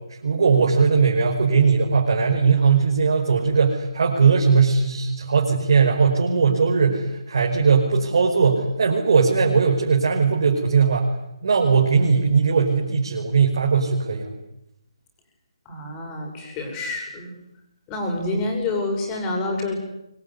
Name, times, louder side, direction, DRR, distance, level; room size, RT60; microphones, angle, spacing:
voice 1, 0.2-11.1 11.4-14.3, right 5 dB, 50° right, -1 dB, 5.3 m, -19 dB
voice 2, 15.6-17.3 17.9-19.8, left 2 dB, 15° left, 2 dB, 6.3 m, -27 dB
25.0 x 22.5 x 9.8 m, 0.84 s
hypercardioid pair, 170°, 3 cm